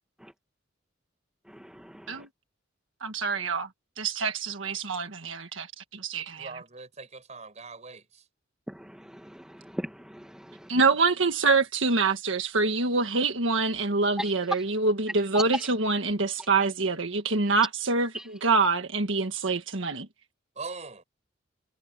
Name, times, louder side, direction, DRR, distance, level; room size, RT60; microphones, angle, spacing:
voice 1, 1.6-2.2 8.7-10.7 14.2-14.3 15.3-15.7 18.1-18.2, equal, 5° right, 1.3 m, -37 dB
voice 2, 3.0-3.7 4.0-6.5 10.7-20.1, right 3 dB, 70° right, 1.6 m, -26 dB
voice 3, 6.4-8.3 20.5-21.0, right 4 dB, 35° right, 6.2 m, -41 dB
head